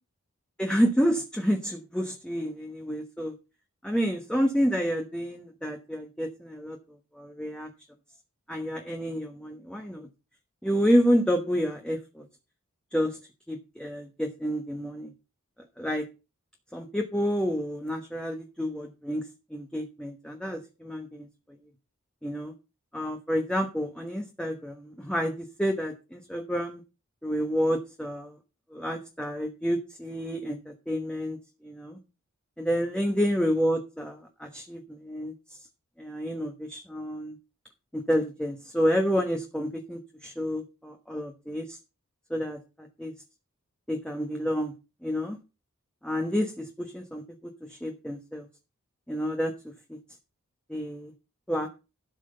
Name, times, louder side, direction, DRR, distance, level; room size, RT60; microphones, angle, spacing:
voice 1, 0.6-3.3 3.8-6.8 7.1-7.7 8.5-10.1 10.6-12.2 12.9-13.2 13.5-15.1 15.8-16.0 16.7-19.2 19.5-21.3 22.2-22.5 22.9-25.3 25.6-26.8 27.2-28.4 28.7-30.6 30.9-31.4 31.6-32.0 32.6-35.3 36.0-37.3 37.9-41.8 42.3-43.1 43.9-44.7 45.0-45.4 46.0-46.7 46.9-47.2 47.7-48.4 49.1-49.5 49.9-50.0 50.7-51.1 51.5-51.7, equal, 5° left, 3 dB, 1.2 m, -29 dB
12.5 x 6.1 x 6.7 m, 0.30 s
head